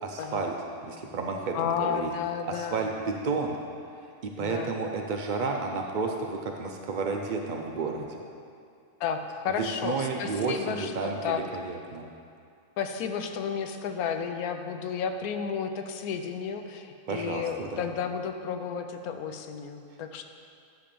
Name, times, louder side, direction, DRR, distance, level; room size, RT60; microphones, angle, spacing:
voice 1, 0.0-0.5 0.8-2.1 2.5-3.6 4.2-8.2 9.6-12.0 17.1-17.9, right 4 dB, 85° right, 1 dB, 0.4 m, -31 dB
voice 2, 1.5-2.9 4.4-4.7 9.0-11.4 12.8-20.2, left 7 dB, 75° left, 6 dB, 1.1 m, -32 dB
10.5 x 3.5 x 6.8 m, 2.4 s
omnidirectional pair, 1.6 m